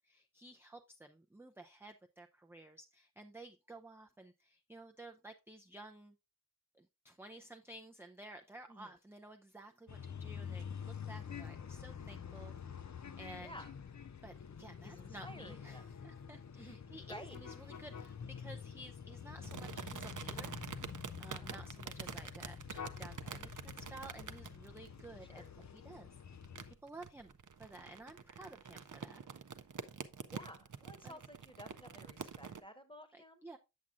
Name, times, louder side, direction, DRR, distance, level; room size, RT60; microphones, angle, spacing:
voice 1, 0.0-6.2 6.7-13.6 14.2-20.5 21.2-26.1 26.6-29.2 31.0-31.2 33.1-33.6, right 1 dB, 5° right, 4 dB, 0.4 m, -54 dB
sound 1, 9.9-26.7, left 7 dB, 55° left, 0.5 m, -48 dB
voice 2, 13.3-13.7 14.8-16.0 16.6-16.8 17.1-17.4 17.6-17.7 21.4-21.6 25.2-25.5 29.1-29.3 30.2-33.5, equal, 15° left, 7 dB, 1.2 m, -53 dB
sound 2, 17.3-18.1 19.4-32.6, right 6 dB, 65° right, 0.5 m, -48 dB
7.4 x 7.3 x 2.5 m, 0.25 s
wide cardioid pair, 45°, 33 cm